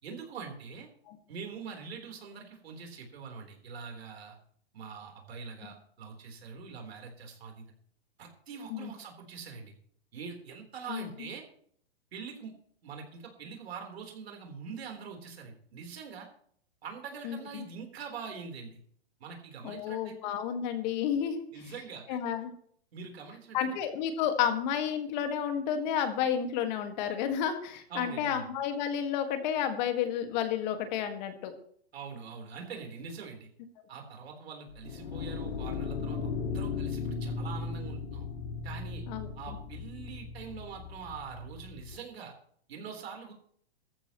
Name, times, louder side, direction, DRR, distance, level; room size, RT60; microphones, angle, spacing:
voice 1, 0.0-0.9 1.3-4.4 4.7-7.6 8.2-9.7 10.1-11.4 12.1-12.5 12.8-16.3 16.8-18.8 19.2-20.2 21.5-22.2 22.9-23.7 27.9-28.4 31.9-33.5 33.9-36.2 36.5-38.3 38.6-39.1 39.4-42.3 42.7-43.3, right 5 dB, 75° right, 3 dB, 4.1 m, -44 dB
voice 2, 17.2-17.7 19.6-21.7 22.1-22.5 23.5-31.5 39.1-39.6, left 8 dB, 45° left, 7 dB, 1.9 m, -31 dB
sound 1, 34.7-42.0, left 5 dB, 85° left, 2.0 m, -37 dB
16.5 x 14.0 x 3.1 m, 0.62 s
hypercardioid pair, 135°, 32 cm